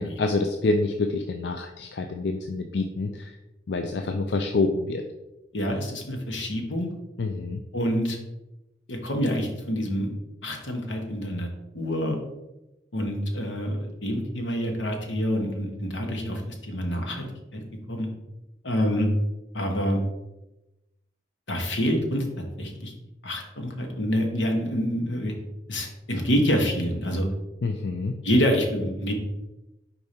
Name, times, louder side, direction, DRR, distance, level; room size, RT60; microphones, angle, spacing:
voice 1, 0.0-3.4 3.7-5.0 7.2-7.6 27.6-28.2, left 3 dB, 70° left, 5 dB, 0.4 m, -27 dB
voice 2, 5.5-6.9 7.7-8.2 8.9-10.1 10.4-11.5 11.7-12.2 12.9-17.2 17.5-17.6 17.9-18.1 18.6-19.1 19.5-20.0 21.5-22.2 22.6-22.9 23.2-25.3 25.7-27.3 28.2-29.1, equal, 90° left, 2 dB, 1.2 m, -27 dB
5.1 x 4.6 x 4.2 m, 0.97 s
head